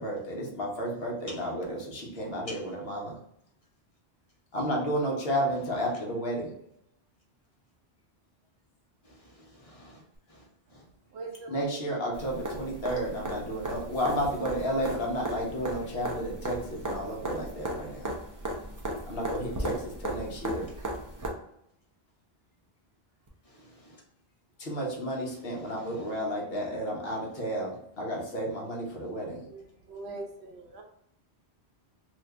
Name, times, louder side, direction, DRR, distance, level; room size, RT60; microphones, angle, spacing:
voice 1, 0.0-3.1 4.5-6.5 11.5-18.1 19.1-19.7 20.0-20.7 24.6-29.4, equal, 65° left, 1.1 m, -32 dB
voice 2, 5.5-5.9 9.0-10.9 12.8-13.0 20.6-20.7 23.4-24.0 25.3-26.2, left 1 dB, 35° left, 0.9 m, -51 dB
voice 3, 11.1-11.8 29.4-30.8, right 3 dB, 80° right, 0.9 m, -42 dB
sound 1, 12.1-21.3 23.3-23.4, right 1 dB, 30° right, 0.3 m, -36 dB
2.8 x 2.5 x 3.3 m
omnidirectional pair, 1.1 m